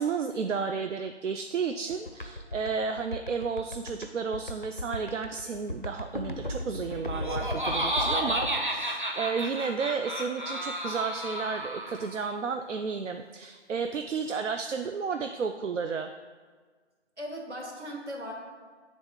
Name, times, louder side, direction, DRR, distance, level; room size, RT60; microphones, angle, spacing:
voice 1, 0.0-8.5 8.7-16.1, right 5 dB, 90° right, 6 dB, 0.5 m, -32 dB
sound 1, 1.9-8.6, left 1 dB, 45° left, 0.4 m, -36 dB
Laughter, 6.9-12.2, right 1 dB, 45° right, 0.7 m, -32 dB
voice 2, 8.1-8.5 17.2-18.3, equal, 70° right, 0 dB, 1.8 m, -38 dB
8.2 x 3.6 x 3.7 m, 1.5 s
figure-of-eight pair, 175°, 35 cm